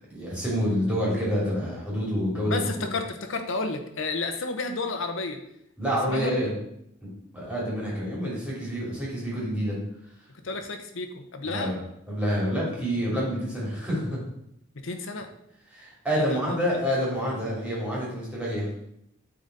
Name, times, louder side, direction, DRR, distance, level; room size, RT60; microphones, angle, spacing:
voice 1, 0.1-2.6 5.8-6.5 7.0-7.1 7.3-9.8 11.4-11.8 12.1-14.2 15.7-18.7, equal, 5° right, -6 dB, 2.8 m, -27 dB
voice 2, 2.5-5.4 6.1-6.5 10.4-11.7 14.8-15.3 16.1-16.5, left 3 dB, 65° left, 6 dB, 0.9 m, -31 dB
8.6 x 4.0 x 4.1 m, 0.75 s
head